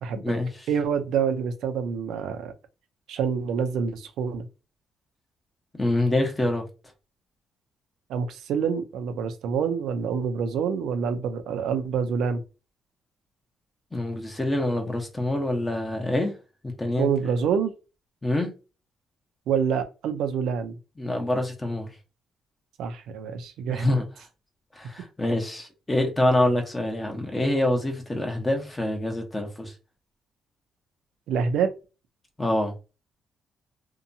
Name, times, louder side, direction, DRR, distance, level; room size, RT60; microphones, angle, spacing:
voice 1, 0.0-0.3 0.7-2.5 3.1-4.5 8.1-12.4 17.0-17.7 19.5-20.8 22.8-23.9 31.3-31.7, right 6 dB, 80° right, 0.5 m, -26 dB
voice 2, 5.7-6.6 13.9-16.3 16.6-17.1 18.2-18.5 21.0-21.9 23.7-24.0 24.7-29.7 32.4-32.7, left 1 dB, 15° left, 0.9 m, -26 dB
2.8 x 2.2 x 2.6 m
cardioid pair, 90°, 0 cm